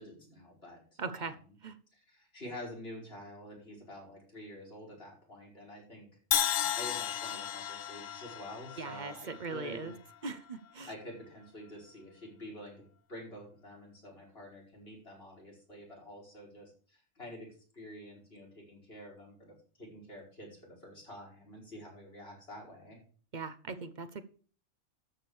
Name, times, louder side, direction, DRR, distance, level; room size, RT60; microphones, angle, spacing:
voice 1, 0.0-1.5 1.9-6.1 6.5-10.0 10.9-12.8 13.1-23.0, left 1 dB, 50° left, -3 dB, 5.3 m, -48 dB
voice 2, 1.0-1.3 1.6-1.8 8.8-9.9 10.2-10.9 23.3-24.2, right 4 dB, 40° right, 11 dB, 0.9 m, -40 dB
Crash cymbal, 6.3-10.3, left 11 dB, 85° left, 1.1 m, -34 dB
13.0 x 5.1 x 7.0 m, 0.42 s
omnidirectional pair, 1.3 m